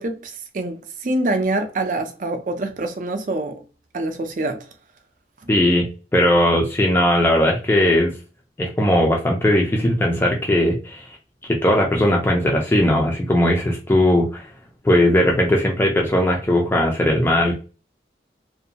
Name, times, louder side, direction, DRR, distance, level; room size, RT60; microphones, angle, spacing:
voice 1, 0.0-3.6 3.9-4.7 5.4-5.5, right 2 dB, 45° right, 0.4 m, -25 dB
voice 2, 5.5-8.1 8.6-11.1 11.6-14.5 14.8-17.5, left 1 dB, 10° left, 0.4 m, -18 dB
2.5 x 2.2 x 2.8 m
head